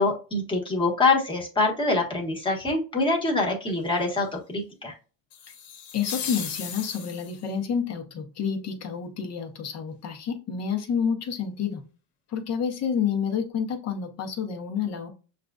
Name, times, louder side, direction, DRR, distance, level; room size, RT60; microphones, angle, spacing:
voice 1, 0.0-4.9, left 3 dB, 15° left, 0 dB, 1.3 m, -25 dB
sound 1, 5.3-7.5, left 8 dB, 85° left, 1.1 m, -36 dB
voice 2, 5.9-11.8 12.3-15.1, left 7 dB, 45° left, 4 dB, 1.0 m, -29 dB
6.5 x 2.5 x 2.4 m, 0.35 s
cardioid pair, 130°, 37 cm